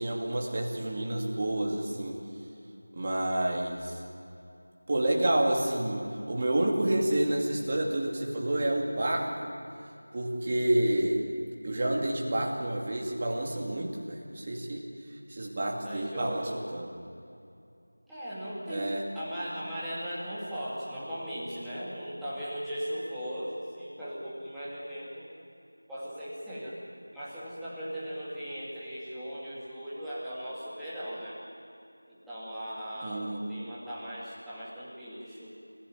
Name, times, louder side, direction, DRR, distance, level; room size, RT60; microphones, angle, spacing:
voice 1, 0.0-2.2 2.9-4.0 4.9-9.5 10.1-11.2 11.6-14.8 15.3-16.9 18.7-19.1 33.0-33.4, right 1 dB, 25° right, -1 dB, 2.7 m, -29 dB
voice 2, 15.8-16.6 18.1-25.3 25.9-26.8 27.1-31.4 32.1-35.5, equal, ahead, -13 dB, 2.5 m, -38 dB
24.5 x 16.0 x 9.1 m, 2.5 s
figure-of-eight pair, 175°, 0 cm